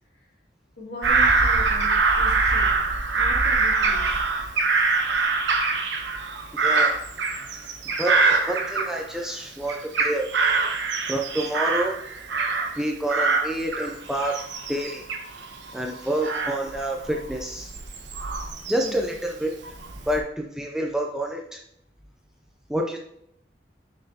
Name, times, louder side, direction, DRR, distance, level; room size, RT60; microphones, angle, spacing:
voice 1, 0.8-2.7 3.1-4.2 18.8-19.0, left 1 dB, 60° left, -4 dB, 2.5 m, -39 dB
Bird vocalization bird call bird song / Crow, 1.0-9.3 9.7-12.8 13.1-19.1 19.6-20.2, right 4 dB, 85° right, 1.0 m, -24 dB
voice 2, 6.6-6.9 8.0-8.2 8.5-10.3 11.1-12.0 12.8-14.4 14.7-15.0 15.7-17.7 18.7-19.5 20.1-21.6 22.7-23.0, right 1 dB, 5° right, 0 dB, 0.5 m, -28 dB
6.5 x 5.9 x 2.8 m, 0.73 s
head